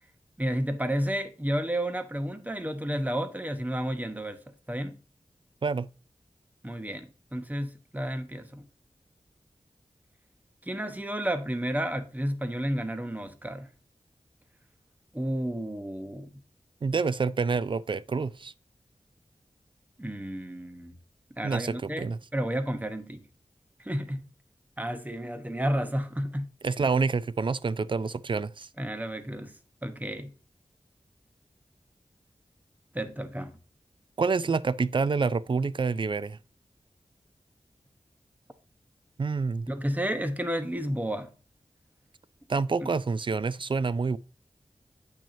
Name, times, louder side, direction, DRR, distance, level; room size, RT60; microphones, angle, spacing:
voice 1, 0.4-4.4 4.7-5.0 6.6-8.6 10.6-13.7 15.1-16.3 20.0-21.0 21.4-23.2 23.8-24.3 24.8-26.5 28.8-29.6 29.8-30.3 32.9-33.6 39.7-41.3 42.8-42.9, equal, 15° right, 1.0 m, -31 dB
voice 2, 16.8-18.5 21.4-22.2 26.6-28.7 34.2-36.4 39.2-39.7 42.5-44.2, right 4 dB, 45° right, 0.4 m, -27 dB
8.5 x 6.1 x 2.7 m
wide cardioid pair, 50°, 12 cm